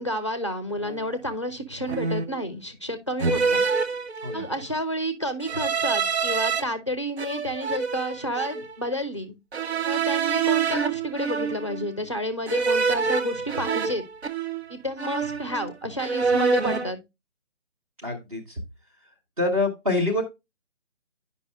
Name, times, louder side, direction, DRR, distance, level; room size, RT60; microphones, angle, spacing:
voice 1, 0.0-3.6 4.3-9.3 9.8-14.0 14.7-17.0, equal, 25° left, 0.5 m, -30 dB
sound 1, 0.8-1.0 1.9-2.4 3.2-4.6 5.4-6.6 7.2-8.7 9.5-11.9 12.5-14.7 15.0-15.7 16.0-16.9, right 5 dB, 60° right, 0.8 m, -26 dB
voice 2, 18.0-18.6 19.4-20.2, left 2 dB, 30° right, 1.0 m, -25 dB
9.6 x 5.3 x 2.2 m
figure-of-eight pair, 150°, 37 cm